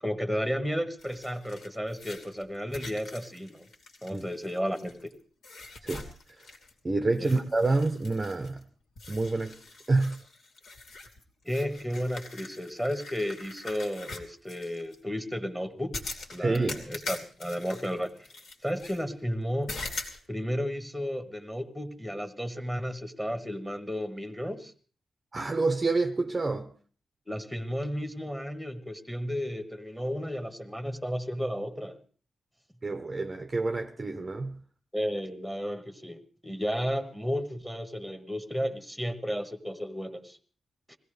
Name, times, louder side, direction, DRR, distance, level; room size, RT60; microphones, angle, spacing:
voice 1, 0.0-3.7 4.0-5.1 7.2-7.4 11.4-16.0 16.3-18.3 18.6-19.8 20.3-24.7 27.3-32.0 34.9-40.4 40.9-41.0, equal, 5° left, 1.3 m, -33 dB
sound 1, 1.0-5.1 5.4-6.8 7.1-8.6 9.0-15.0 15.9-19.0 19.7-20.2, left 3 dB, 75° left, 2.7 m, -43 dB
voice 2, 6.8-8.6 9.1-9.6 9.9-10.2 16.4-16.8 25.3-26.7 32.8-34.6, right 3 dB, 25° right, 0.7 m, -27 dB
21.5 x 16.5 x 3.3 m
wide cardioid pair, 135°, 0 cm